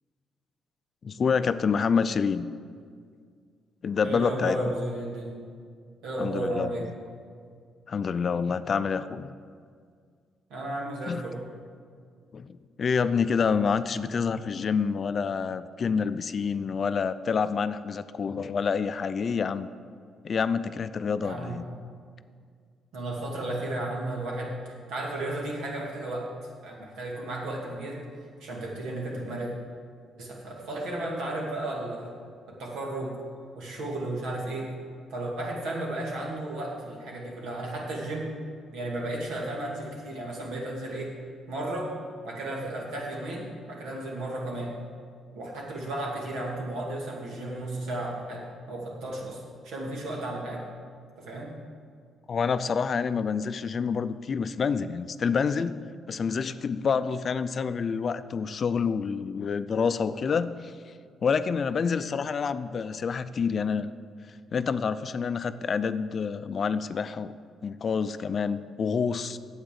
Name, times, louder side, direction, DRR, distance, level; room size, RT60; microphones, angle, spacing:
voice 1, 1.0-2.5 3.8-4.6 6.2-6.7 7.9-9.3 11.1-11.2 12.3-19.7 20.2-21.6 52.3-55.8 56.1-60.7 61.2-63.9 64.5-67.3 67.6-69.4, left 6 dB, 45° left, 13 dB, 0.4 m, -27 dB
voice 2, 4.0-5.3 6.0-6.8 10.5-11.4 21.2-21.6 22.9-24.5 24.9-26.3 26.6-28.0 28.4-29.5 30.2-32.1 32.5-33.2 33.5-34.7 35.1-38.3 38.7-41.1 41.5-41.9 42.2-44.7 45.3-50.6 51.2-51.5, right 1 dB, 85° right, -2 dB, 2.4 m, -34 dB
9.0 x 8.1 x 6.8 m, 2.1 s
cardioid pair, 90°, 0 cm